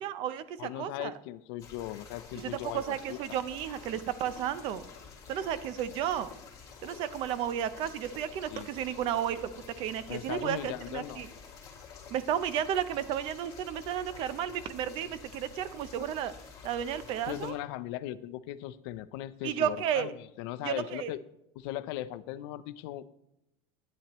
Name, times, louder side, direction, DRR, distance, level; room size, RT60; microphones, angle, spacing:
voice 1, 0.0-1.1 2.4-4.9 5.3-6.3 6.8-11.3 12.1-16.3 16.6-17.6 19.4-20.1 20.6-21.1, right 10 dB, 45° right, 14 dB, 0.6 m, -33 dB
voice 2, 0.6-3.2 8.5-8.7 10.1-11.2 17.3-21.2 21.6-23.0, left 14 dB, 90° left, 14 dB, 0.6 m, -38 dB
sound 1, 1.6-17.5, left 5 dB, 30° left, 2.6 m, -49 dB
11.5 x 9.4 x 3.0 m, 0.84 s
cardioid pair, 180°, 13 cm